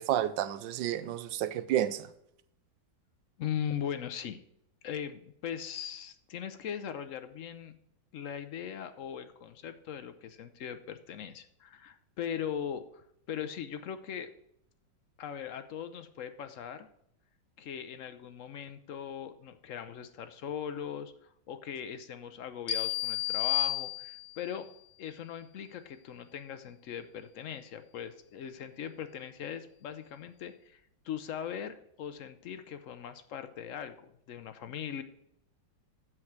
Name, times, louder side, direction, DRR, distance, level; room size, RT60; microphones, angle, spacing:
voice 1, 0.0-2.1, right 11 dB, 80° right, 14 dB, 1.3 m, -30 dB
voice 2, 3.4-4.4 4.8-7.7 8.1-14.3 15.2-16.9 17.6-24.7 25.0-35.0, left 8 dB, 65° left, 10 dB, 0.8 m, -40 dB
sound 1, 22.7-24.5, left 13 dB, 90° left, 1.9 m, -31 dB
7.8 x 6.1 x 5.9 m, 0.73 s
omnidirectional pair, 2.0 m